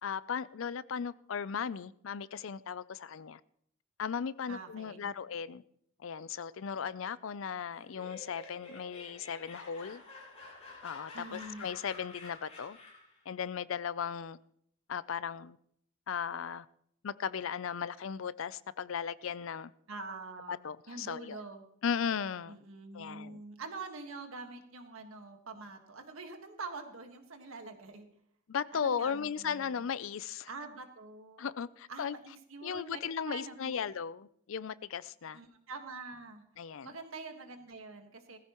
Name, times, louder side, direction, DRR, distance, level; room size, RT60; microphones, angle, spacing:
voice 1, 0.0-3.4 4.0-5.6 6.0-10.0 10.8-12.8 13.3-14.4 14.9-15.6 16.1-16.7 17.0-19.7 20.5-21.4 21.8-22.6 22.9-23.4 28.5-30.5 31.4-32.2 32.6-35.4 36.6-36.9, left 7 dB, 70° left, 0.5 m, -36 dB
voice 2, 4.5-5.1 11.1-11.6 19.9-21.6 22.5-28.1 28.7-29.8 30.5-31.6 31.9-32.9 33.2-33.8 35.3-36.4 36.8-38.4, right 3 dB, 85° right, 1.6 m, -45 dB
Laughter, 7.7-13.2, left 3 dB, 30° left, 7.2 m, -50 dB
19.5 x 14.5 x 3.0 m
head